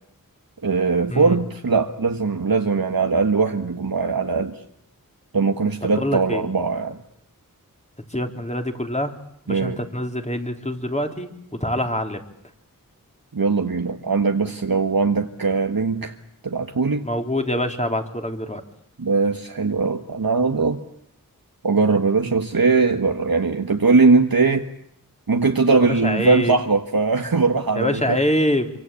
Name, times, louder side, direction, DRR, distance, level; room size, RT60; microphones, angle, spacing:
voice 1, 0.6-4.6 5.3-7.0 9.5-9.8 13.3-16.1 16.4-17.0 19.0-20.8 21.6-24.7 25.3-28.2, right 4 dB, 80° right, 4 dB, 1.5 m, -20 dB
voice 2, 6.0-6.5 8.1-9.2 9.5-12.2 17.0-18.6 25.9-26.6 27.8-28.7, left 1 dB, 20° left, 4 dB, 3.6 m, -25 dB
27.0 x 24.5 x 8.5 m, 0.72 s
wide cardioid pair, 45°, 35 cm